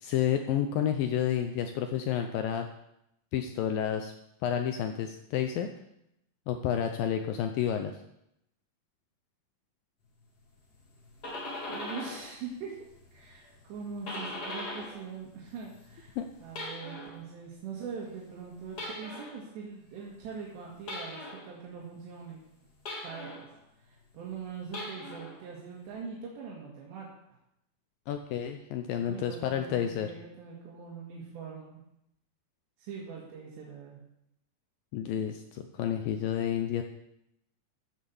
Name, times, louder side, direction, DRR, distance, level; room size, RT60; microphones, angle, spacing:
voice 1, 0.0-2.7 3.3-4.1 4.4-5.7 6.5-7.9 16.2-16.3 28.1-30.1 34.9-36.8, left 9 dB, 80° left, 6 dB, 2.1 m, -30 dB
sound 1, 10.9-12.3 12.7-15.1 15.4-17.2 18.7-19.4 20.9-21.5 22.9-23.5 24.6-25.4, left 1 dB, 35° left, 1.6 m, -40 dB
voice 2, 11.7-12.9 13.1-22.4 23.0-23.4 23.8-27.1 29.0-31.8 32.8-34.0, right 5 dB, 85° right, -3 dB, 4.1 m, -42 dB
14.5 x 7.4 x 7.1 m, 0.81 s
omnidirectional pair, 4.8 m